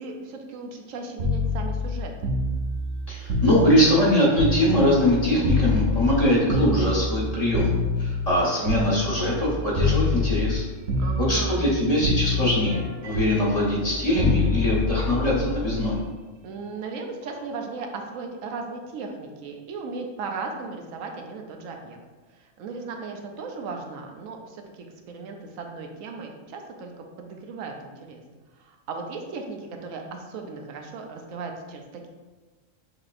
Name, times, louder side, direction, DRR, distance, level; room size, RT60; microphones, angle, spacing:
voice 1, 0.0-2.3 11.0-11.7 16.4-22.0 22.3-28.2 28.6-32.1, right 4 dB, 90° right, 3 dB, 1.0 m, -36 dB
sound 1, 1.2-5.1 5.4-9.5 9.8-10.6 10.9-11.8 12.0-16.0 17.2-17.5, left 3 dB, 60° right, 0.9 m, -26 dB
voice 2, 3.1-7.7 8.0-10.6 11.3-16.0, equal, 30° left, -6 dB, 1.1 m, -22 dB
6.3 x 2.9 x 2.5 m, 1.3 s
omnidirectional pair, 1.3 m